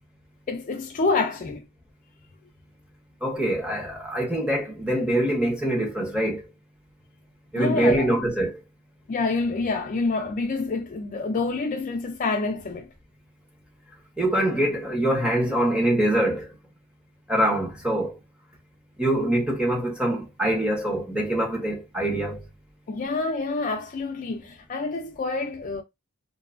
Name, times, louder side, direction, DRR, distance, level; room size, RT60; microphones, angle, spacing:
voice 1, 0.5-1.6 7.6-8.1 9.1-12.9 22.9-25.8, left 3 dB, 35° left, 0.4 m, -27 dB
voice 2, 3.2-6.5 7.5-8.6 14.2-16.5 17.3-18.2 19.0-22.4, right 1 dB, 5° right, 0.7 m, -24 dB
2.6 x 2.2 x 2.4 m
head